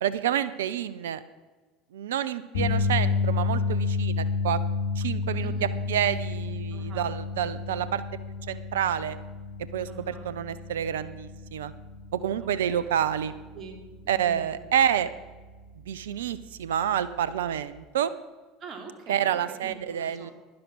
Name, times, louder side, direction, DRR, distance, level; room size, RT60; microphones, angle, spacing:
voice 1, 0.0-1.2 1.9-4.6 5.0-5.5 5.9-8.0 8.5-9.2 9.7-11.7 12.1-13.3 14.1-15.1 15.9-18.1 19.1-20.3, right 10 dB, 80° right, 16 dB, 0.5 m, -28 dB
sound 1, 2.5-14.8 15.1-15.4 17.6-17.7, left 4 dB, 80° left, 2.3 m, -31 dB
voice 2, 5.4-5.7 6.7-7.1 9.9-10.3 12.4-12.9 13.5-14.7 18.6-20.3, right 4 dB, 40° right, 4 dB, 2.9 m, -44 dB
11.5 x 10.5 x 6.1 m, 1.3 s
hypercardioid pair, 75°, 0 cm